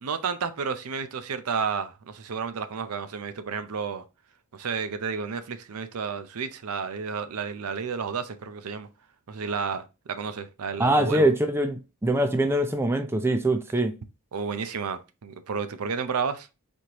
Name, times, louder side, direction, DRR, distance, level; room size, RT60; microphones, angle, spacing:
voice 1, 0.0-4.0 4.5-8.9 9.3-11.3 14.3-16.5, right 5 dB, 80° right, 0.6 m, -31 dB
voice 2, 10.8-13.9, right 1 dB, 10° right, 0.4 m, -23 dB
4.3 x 3.2 x 2.8 m
head